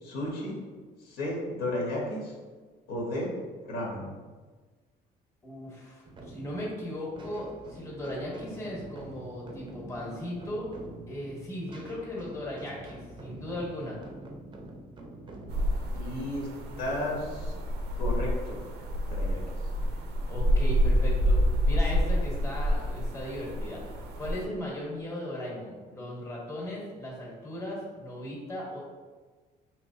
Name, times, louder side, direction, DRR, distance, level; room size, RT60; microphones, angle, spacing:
voice 1, 0.0-0.5 1.0-2.3 2.9-3.3 3.6-4.1 15.9-16.5 16.8-17.5 18.0-18.7 19.1-19.4, left 1 dB, 70° left, -3 dB, 1.3 m, -33 dB
voice 2, 5.4-10.7 11.1-14.0 20.3-28.8, left 1 dB, 15° left, -4 dB, 1.3 m, -37 dB
sound 1, 6.0-17.5, right 1 dB, 30° right, 0.6 m, -46 dB
sound 2, 15.5-24.4, equal, 85° right, 0.6 m, -28 dB
4.6 x 3.1 x 2.7 m, 1.4 s
cardioid pair, 110°, 17 cm